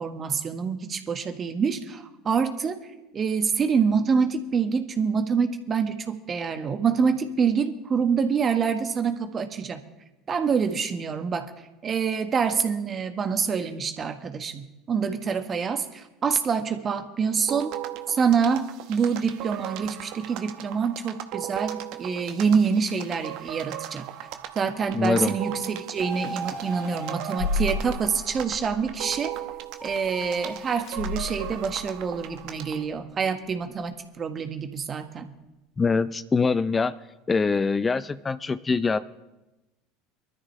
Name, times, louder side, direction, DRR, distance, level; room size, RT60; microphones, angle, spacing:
voice 1, 0.0-2.8 3.1-9.8 10.3-11.5 11.8-17.7 18.1-24.1 24.5-29.3 29.8-35.3, right 6 dB, 35° right, 7 dB, 1.6 m, -26 dB
sound 1, 17.5-32.8, right 13 dB, 60° right, 1.0 m, -38 dB
sound 2, 21.6-22.4 22.9-23.1 23.4-23.5 24.3-24.6 24.9-25.1 25.4-25.5 27.2-33.1 33.4-33.6 33.8-33.9 37.6-37.7, left 3 dB, 50° left, 3.5 m, -35 dB
voice 2, 24.9-25.3 35.8-36.9 37.3-39.0, left 4 dB, 20° left, 13 dB, 0.6 m, -23 dB
sound 3, 26.0-28.6 29.8-31.1, right 3 dB, ahead, 3.8 m, -38 dB
23.5 x 13.0 x 3.3 m, 1.0 s
hypercardioid pair, 75°, 0 cm